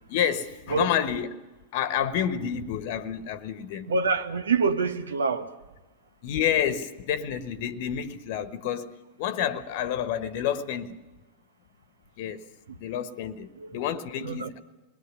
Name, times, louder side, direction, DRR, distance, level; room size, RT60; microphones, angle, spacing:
voice 1, 0.1-1.3 1.7-3.9 6.2-11.0 12.2-12.5 12.8-14.6, left 9 dB, 55° left, 1.2 m, -29 dB
voice 2, 3.9-5.5 13.6-13.8 14.2-14.5, right 4 dB, 75° right, 1.4 m, -26 dB
28.5 x 21.0 x 6.1 m
figure-of-eight pair, 90°, 0 cm